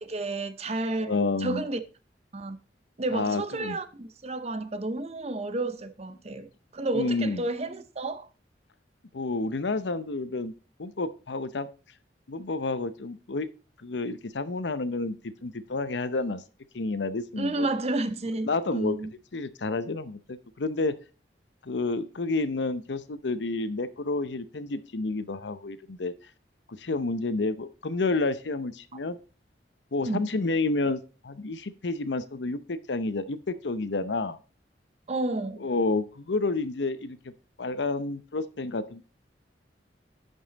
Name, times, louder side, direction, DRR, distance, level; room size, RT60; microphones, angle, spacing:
voice 1, 0.1-1.8 2.3-2.6 3.0-6.5 6.7-8.3 17.4-19.1 30.0-30.3 35.1-35.7, right 2 dB, 35° right, 0.7 m, -31 dB
voice 2, 1.0-1.6 3.1-3.8 6.9-7.4 9.1-10.5 10.8-11.7 12.3-13.5 13.8-16.4 16.7-17.7 18.4-19.0 19.3-21.0 21.6-26.1 26.8-29.2 29.9-34.4 35.6-37.2 37.6-39.0, left 3 dB, 80° left, 0.7 m, -30 dB
11.0 x 5.5 x 4.0 m
head